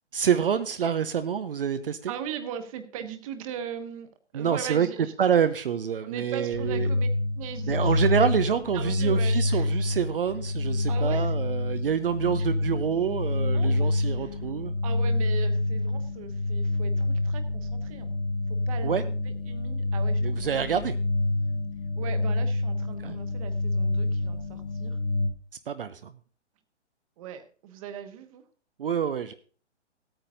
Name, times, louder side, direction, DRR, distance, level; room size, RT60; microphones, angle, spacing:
voice 1, 0.1-2.1 4.3-4.9 5.2-6.9 7.7-14.8 18.8-19.0 20.2-20.9 23.0-23.2 25.7-26.1 28.8-29.3, right 8 dB, 50° right, 10 dB, 0.7 m, -27 dB
voice 2, 2.1-4.1 4.3-5.1 6.0-7.1 7.3-8.1 8.5-9.8 10.9-11.3 12.4-12.5 13.5-14.5 14.8-18.1 18.5-20.6 22.0-25.0 27.2-28.4, right 8 dB, 30° right, 8 dB, 1.2 m, -39 dB
sound 1, 6.5-25.3, left 2 dB, 50° left, 3.0 m, -27 dB
16.0 x 8.9 x 2.6 m, 0.40 s
figure-of-eight pair, 125°, 35 cm